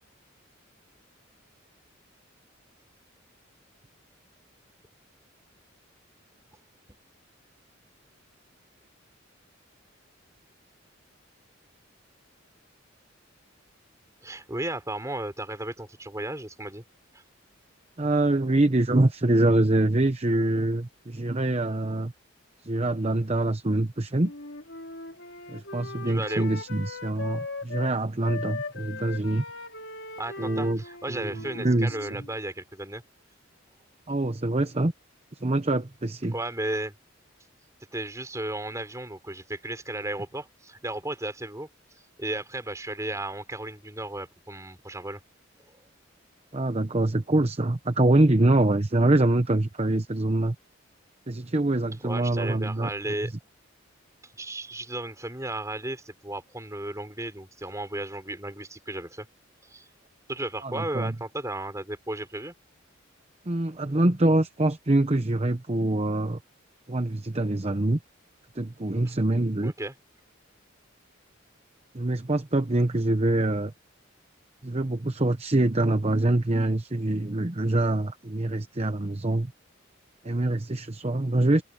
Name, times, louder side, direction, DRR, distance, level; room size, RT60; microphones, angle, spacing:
voice 1, 14.2-16.8 17.1-17.2 26.1-26.5 30.2-33.0 36.3-36.9 37.9-41.7 42.2-45.2 45.6-45.8 52.0-53.3 54.2-59.3 59.6-59.9 60.3-62.5 69.6-69.9, right 1 dB, 15° right, 5.4 m, -34 dB
voice 2, 18.0-22.1 22.6-24.3 25.5-29.4 30.4-30.8 31.1-32.0 34.1-34.9 35.4-36.3 46.5-50.5 51.3-52.9 60.6-61.1 63.5-66.4 66.9-68.0 68.5-69.7 71.9-73.7 74.6-79.5 80.2-81.6, right 2 dB, 30° right, 0.9 m, -24 dB
Wind instrument woodwind instrument, 24.2-27.9 28.2-32.3, left 3 dB, 60° left, 4.5 m, -39 dB
head